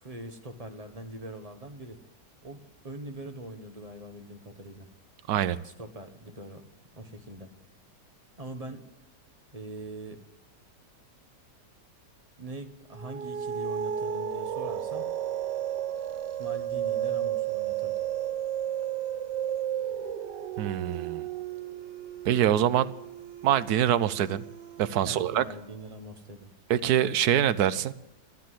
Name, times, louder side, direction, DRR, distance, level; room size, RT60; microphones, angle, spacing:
voice 1, 0.0-2.0 2.4-4.9 5.6-6.6 7.0-7.5 8.4-8.9 9.5-10.2 12.4-15.1 16.4-18.0 25.0-26.5, right 1 dB, 20° right, 6 dB, 1.4 m, -42 dB
voice 2, 5.3-5.6 20.6-21.3 22.2-22.9 23.4-24.4 24.8-25.4 26.7-27.9, right 10 dB, 70° right, 15 dB, 1.2 m, -24 dB
sound 1, 12.9-25.8, right 10 dB, 90° right, 1.5 m, -33 dB
sound 2, 13.9-14.4 14.9-15.4 15.9-16.4 16.9-17.4 17.9-18.4, left 7 dB, 85° left, 1.8 m, -48 dB
13.5 x 12.0 x 7.7 m, 0.89 s
omnidirectional pair, 1.8 m